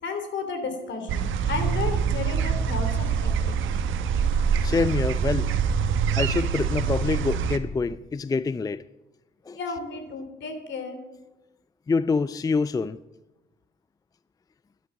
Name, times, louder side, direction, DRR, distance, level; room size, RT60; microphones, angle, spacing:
voice 1, 0.0-3.8 9.5-11.0, left 4 dB, 65° left, 3.3 m, -33 dB
sound 1, 1.1-7.6, right 7 dB, 80° right, 1.1 m, -25 dB
voice 2, 4.6-5.5 6.2-8.8 9.5-9.6 11.9-13.0, left 4 dB, 20° left, 0.4 m, -26 dB
12.0 x 11.5 x 7.1 m
cardioid pair, 90°, 20 cm